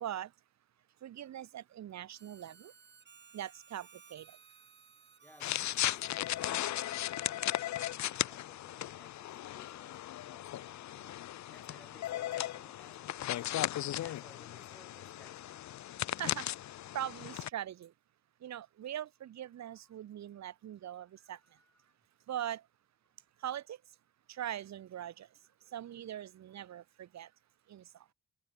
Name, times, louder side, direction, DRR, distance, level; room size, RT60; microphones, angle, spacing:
voice 1, 1.0-2.7 3.3-4.3 16.2-16.5 16.9-17.9 18.4-21.4 22.3-22.6 23.4-23.8 24.3-25.3 25.7-27.3 27.7-27.8, right 11 dB, 65° right, 1.6 m, -41 dB
Harmonica, 2.1-7.3, right 6 dB, 35° right, 2.7 m, -60 dB
voice 2, 5.1-15.7 21.2-22.0, left 1 dB, 5° left, 4.0 m, -62 dB
sound 1, 5.4-17.5, left 13 dB, 70° left, 1.0 m, -37 dB
cardioid pair, 90°, 30 cm